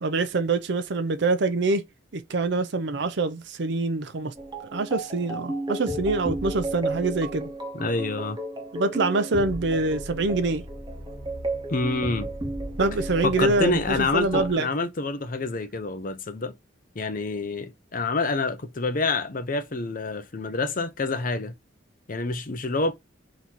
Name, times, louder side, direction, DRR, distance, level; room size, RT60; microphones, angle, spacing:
voice 1, 0.0-1.8 2.1-4.3 4.7-7.5 8.7-10.7 12.8-14.7, right 3 dB, 60° right, 0.6 m, -25 dB
sound 1, 4.4-14.5, right 1 dB, 25° right, 0.9 m, -33 dB
voice 2, 7.7-8.4 11.7-12.3 13.2-16.5 16.9-21.5 22.1-22.9, left 3 dB, 45° left, 0.7 m, -27 dB
4.0 x 2.8 x 4.5 m
head